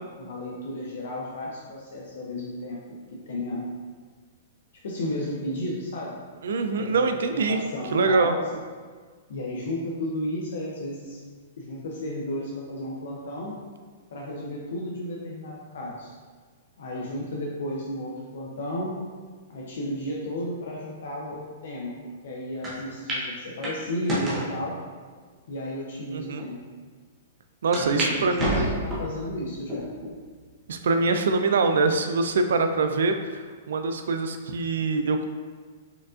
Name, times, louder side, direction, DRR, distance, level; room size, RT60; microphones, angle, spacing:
voice 1, 0.2-2.8 3.1-3.6 4.8-6.2 6.6-7.1 7.5-8.4 9.3-11.2 11.6-13.5 14.1-16.1 16.8-19.0 19.5-21.9 22.2-24.8 25.5-26.6 27.7-29.9, left 1 dB, 65° left, -3 dB, 0.5 m, -33 dB
voice 2, 6.4-7.6 7.9-8.4 26.1-26.4 27.6-28.8 30.7-35.3, right 3 dB, 80° right, 7 dB, 0.3 m, -24 dB
sound 1, 22.6-22.7 23.1-23.2 23.6-24.5 25.2-25.3 26.0-26.1 26.4-26.5 27.7-28.1 28.4-29.1 29.7-30.1 30.7-30.8 31.9-32.3, right 1 dB, 15° right, 0.6 m, -29 dB
4.4 x 2.5 x 2.4 m, 1.5 s
hypercardioid pair, 170°, 0 cm